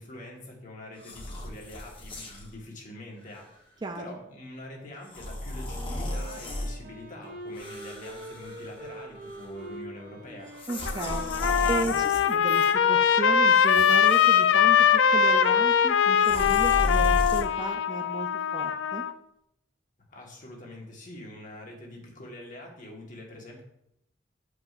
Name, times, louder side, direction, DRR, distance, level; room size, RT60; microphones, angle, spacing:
voice 1, 0.0-3.5 3.9-10.5 20.1-23.6, left 1 dB, 45° left, -1 dB, 1.5 m, -44 dB
sound 1, 1.0-2.5 3.2-3.4 5.0-6.8 7.5-9.0 9.2-9.7 10.5-12.7 13.4-14.8 16.2-17.4, left 1 dB, 30° left, 1.1 m, -34 dB
voice 2, 3.8-4.2 10.7-11.3 11.7-14.9 15.1-19.0, right 3 dB, 25° right, 5 dB, 0.4 m, -34 dB
Wind instrument woodwind instrument, 5.6-12.3, right 1 dB, 65° right, 2.2 m, -44 dB
Trumpet, 10.7-19.1, left 8 dB, 85° left, 0.3 m, -22 dB
8.6 x 4.8 x 2.5 m, 0.79 s
head